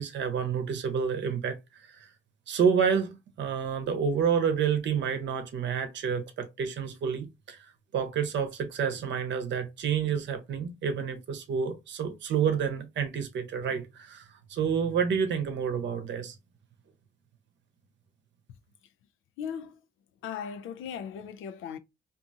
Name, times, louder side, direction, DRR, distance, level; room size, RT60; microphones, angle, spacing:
voice 1, 0.0-2.1 2.5-16.3, right 7 dB, 65° right, 0.8 m, -29 dB
voice 2, 19.4-19.8 20.2-21.8, left 7 dB, 80° left, 0.5 m, -37 dB
2.6 x 2.5 x 2.6 m
cardioid pair, 90°, 20 cm